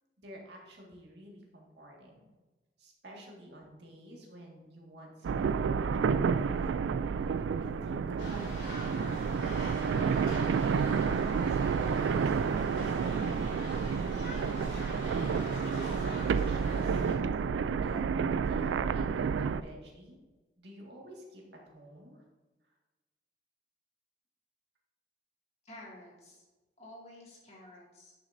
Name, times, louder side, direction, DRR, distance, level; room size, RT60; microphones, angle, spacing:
voice 1, 0.2-2.2 2.8-6.7 7.2-13.8 14.3-14.8 15.2-17.0 17.8-20.2 20.6-22.2, equal, 70° right, -1 dB, 1.8 m, -50 dB
sound 1, 5.2-19.6, right 6 dB, 90° right, 0.3 m, -30 dB
sound 2, 8.2-17.2, left 1 dB, 85° left, 2.7 m, -44 dB
voice 2, 25.6-26.4 26.8-28.2, left 1 dB, 35° left, -3 dB, 2.1 m, -51 dB
10.5 x 6.1 x 2.6 m, 1.2 s
head